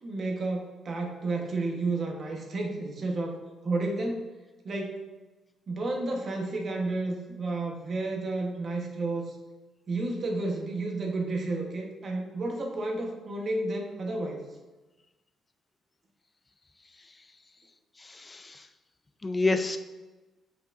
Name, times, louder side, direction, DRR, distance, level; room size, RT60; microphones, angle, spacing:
voice 1, 0.0-3.4 3.6-4.3 4.6-5.0 5.7-9.3 9.9-14.4, right 2 dB, 50° right, 1 dB, 1.2 m, -31 dB
voice 2, 16.9-17.3 18.0-18.7 19.2-19.8, left 3 dB, 25° left, 9 dB, 0.5 m, -30 dB
7.4 x 5.4 x 2.6 m, 1.2 s
cardioid pair, 90°, 0 cm